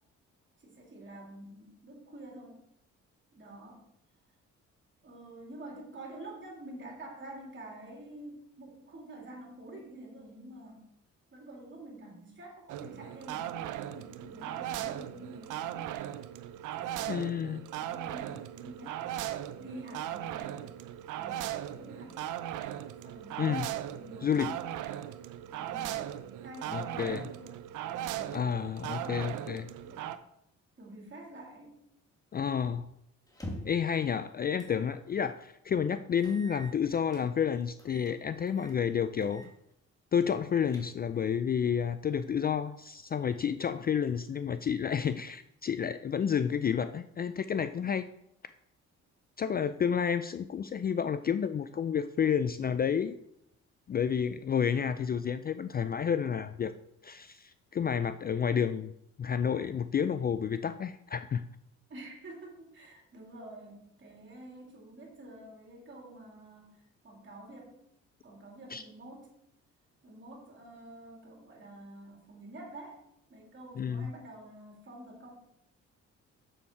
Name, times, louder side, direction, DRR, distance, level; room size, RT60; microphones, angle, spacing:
voice 1, 0.6-2.6 3.3-3.8 5.0-10.9 11.3-15.9 16.7-17.4 17.7-19.1 19.6-20.7 21.2-22.3 23.0-24.7 25.5-26.1 26.4-28.5 28.8-30.1 30.8-31.8 61.9-66.7 67.0-67.8 68.2-69.4 70.0-73.0 73.3-75.3, right 1 dB, 40° right, -1 dB, 3.2 m, -48 dB
sound 1, 12.7-30.2, right 12 dB, 85° right, 0.6 m, -38 dB
voice 2, 17.1-17.6 23.4-23.7 24.2-24.5 26.7-27.3 28.3-29.6 32.3-32.9 33.6-39.5 40.1-48.1 49.4-53.1 53.9-56.7 57.0-58.9 59.2-61.4 68.7-68.8 73.8-74.1, left 7 dB, 30° left, 12 dB, 0.4 m, -30 dB
sound 2, 33.3-33.9 34.6-34.8 35.2-35.3 36.2-37.3 37.8-38.1 38.5-38.8 39.2-39.5 39.8-39.9 40.4-41.2, equal, 10° left, 2.1 m, -45 dB
7.1 x 7.1 x 4.6 m, 0.77 s
cardioid pair, 90°, 30 cm